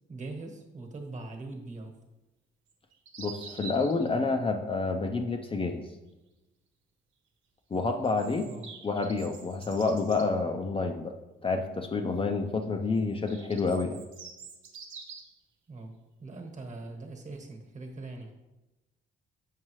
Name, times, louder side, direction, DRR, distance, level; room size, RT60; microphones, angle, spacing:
voice 1, 0.1-2.0 8.4-8.7 15.7-18.3, right 2 dB, 40° right, 3 dB, 1.3 m, -42 dB
sound 1, 2.7-4.1 7.7-10.3 13.0-15.4, right 5 dB, 80° right, 1.1 m, -46 dB
voice 2, 3.2-5.9 7.7-8.5 8.8-11.1 11.4-14.0, left 3 dB, 25° left, 4 dB, 0.5 m, -29 dB
7.5 x 5.2 x 3.1 m, 1.0 s
cardioid pair, 90°, 20 cm